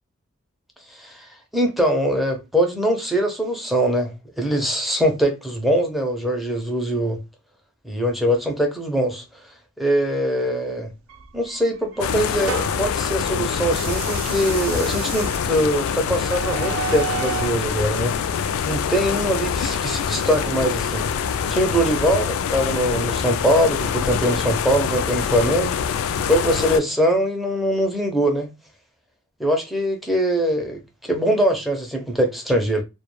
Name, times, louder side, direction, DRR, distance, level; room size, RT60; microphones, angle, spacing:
voice 1, 0.9-1.3 1.5-7.2 7.8-9.2 9.8-10.9 11.3-18.1 18.6-21.0 21.5-25.7 26.3-28.5 29.4-32.8, equal, ahead, 0.5 m, -22 dB
sound 1, 11.1-12.9 13.6-17.6, right 8 dB, 75° right, 0.4 m, -33 dB
sound 2, 12.0-26.8, left 7 dB, 80° left, 0.3 m, -25 dB
2.2 x 2.2 x 3.0 m
head